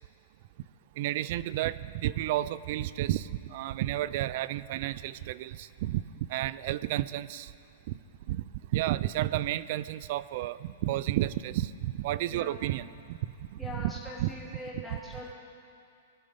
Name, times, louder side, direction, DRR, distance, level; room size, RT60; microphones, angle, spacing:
voice 1, 1.0-6.0 6.3-7.5 7.9-8.0 8.3-8.4 8.7-13.2 14.2-14.3, right 14 dB, 50° right, 17 dB, 0.4 m, -31 dB
voice 2, 12.3-12.6 13.6-15.3, left 1 dB, 5° right, -5 dB, 2.9 m, -42 dB
20.0 x 11.5 x 3.6 m, 2.5 s
hypercardioid pair, 150°, 0 cm